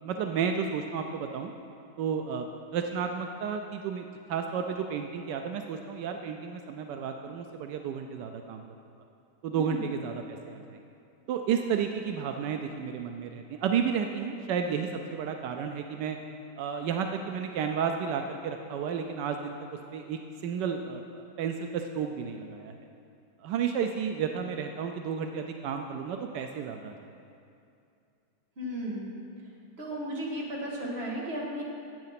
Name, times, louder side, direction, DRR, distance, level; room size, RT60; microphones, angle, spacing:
voice 1, 0.0-1.5 2.0-8.6 9.4-10.8 11.3-16.2 16.6-19.5 19.9-22.7 23.4-26.9, right 7 dB, 85° right, 5 dB, 1.2 m, -32 dB
voice 2, 28.6-29.1 29.8-31.6, right 1 dB, 35° right, -3 dB, 2.0 m, -34 dB
10.5 x 8.3 x 5.8 m, 2.5 s
omnidirectional pair, 1.8 m